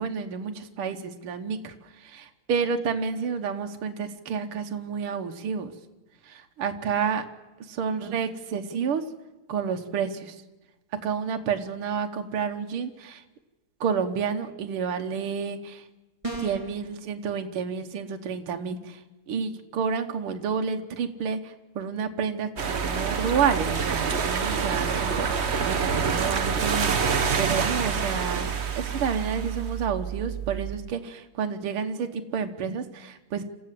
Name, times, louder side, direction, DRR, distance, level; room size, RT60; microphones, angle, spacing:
voice 1, 0.0-5.7 6.2-7.3 7.6-9.0 9.5-10.4 11.0-13.2 13.8-15.9 16.4-19.0 19.3-33.4, right 6 dB, 75° right, 6 dB, 2.1 m, -30 dB
sound 1, 16.2-16.8, right 3 dB, 15° right, 3.2 m, -33 dB
sound 2, 22.6-30.7, right 6 dB, 40° right, 1.2 m, -27 dB
27.5 x 15.0 x 7.6 m, 1.1 s
omnidirectional pair, 2.4 m